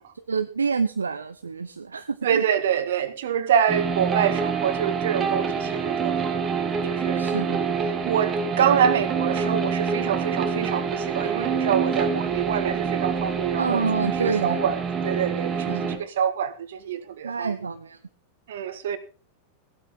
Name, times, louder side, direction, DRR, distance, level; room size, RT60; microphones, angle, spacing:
voice 1, 0.1-2.4 7.1-7.6 13.6-14.6 15.7-16.0 17.2-18.0, right 5 dB, 75° right, 0.8 m, -28 dB
voice 2, 2.2-6.1 6.8-7.3 8.0-13.8 14.2-14.8 15.0-17.5 18.5-19.0, right 8 dB, 60° right, 1.6 m, -25 dB
sound 1, 3.7-16.0, right 6 dB, 20° right, 2.2 m, -26 dB
16.5 x 12.5 x 3.6 m
figure-of-eight pair, 90°, 0 cm